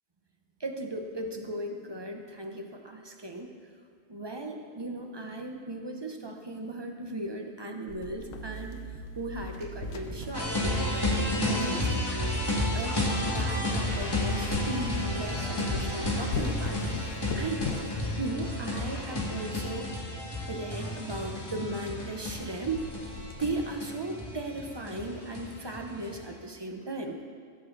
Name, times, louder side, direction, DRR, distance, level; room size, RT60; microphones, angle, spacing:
voice 1, 0.6-3.5 4.1-8.8 9.2-12.0 12.7-13.0 13.3-16.8 17.3-17.7 18.2-19.9 20.5-22.9 23.4-27.2, right 2 dB, 25° right, 3 dB, 0.7 m, -36 dB
sound 1, 7.9-9.0 9.3-12.3 12.9-13.0 13.4-13.6 13.9-20.0 20.2-20.3 20.6-20.7 21.1-21.3 21.7-21.8 22.1-22.5 22.7-23.7, left 5 dB, 90° left, 1.2 m, -40 dB
sound 2, 8.0-14.6, right 5 dB, 55° right, 1.2 m, -42 dB
sound 3, 10.3-26.2, left 1 dB, 20° left, 1.7 m, -31 dB
15.5 x 7.8 x 4.0 m, 2.1 s
omnidirectional pair, 1.3 m